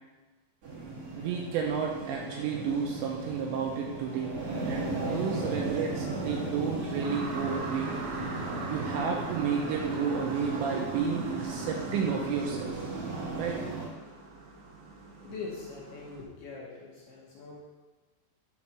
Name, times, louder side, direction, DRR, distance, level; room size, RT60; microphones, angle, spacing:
sound 1, 0.6-13.9, right 3 dB, 45° right, 2.1 m, -36 dB
voice 1, 1.1-4.4 4.7-8.0 8.7-12.8 13.4-13.6, right 6 dB, 80° right, 0 dB, 2.6 m, -32 dB
sound 2, 7.0-16.2, right 3 dB, 65° right, 2.7 m, -42 dB
voice 2, 15.2-17.5, left 4 dB, 75° left, -5 dB, 2.5 m, -42 dB
7.9 x 3.1 x 5.8 m, 1.2 s
omnidirectional pair, 5.5 m